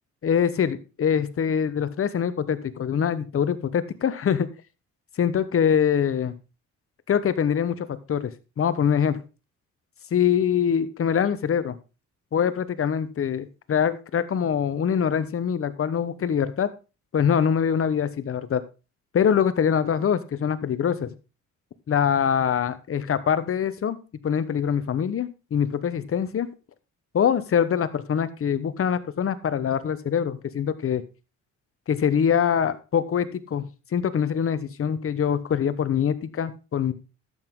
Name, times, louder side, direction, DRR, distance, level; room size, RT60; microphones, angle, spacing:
voice 1, 0.2-4.5 5.2-6.3 7.1-8.3 8.6-9.2 10.1-11.8 12.3-16.7 17.1-18.6 19.1-21.1 21.9-24.0 24.2-26.5 27.1-31.0 31.9-36.9, left 8 dB, 45° left, 13 dB, 1.1 m, -24 dB
12.0 x 8.1 x 3.8 m, 0.31 s
cardioid pair, 90°, 30 cm